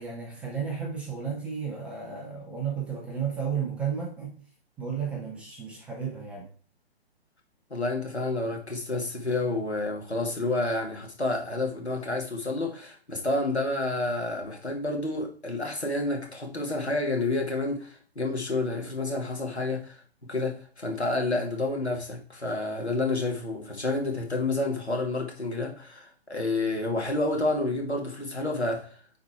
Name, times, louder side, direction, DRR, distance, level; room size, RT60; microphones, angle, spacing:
voice 1, 0.0-4.4 4.8-6.5, right 7 dB, 5° right, 0.5 m, -33 dB
voice 2, 7.7-20.0 20.3-28.9, left 2 dB, 85° left, 2.3 m, -29 dB
9.4 x 4.1 x 4.4 m
figure-of-eight pair, 125°, 32 cm